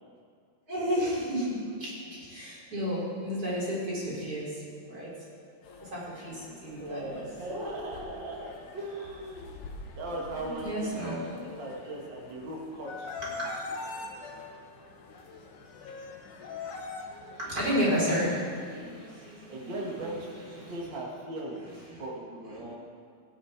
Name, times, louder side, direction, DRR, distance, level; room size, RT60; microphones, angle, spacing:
voice 1, 0.7-5.1 5.8-7.2 10.0-11.4 13.2-13.6 17.4-20.7 21.9-22.0 22.5-22.8, equal, 20° right, -6 dB, 4.4 m, -32 dB
sound 1, 5.6-18.2, left 4 dB, 65° left, 2.2 m, -44 dB
voice 2, 6.7-9.6 10.0-11.1 11.6-13.1 19.5-20.3 20.5-21.6 22.0-22.7, right 1 dB, 70° right, -2 dB, 1.0 m, -38 dB
19.0 x 10.0 x 4.5 m, 2.3 s
omnidirectional pair, 4.7 m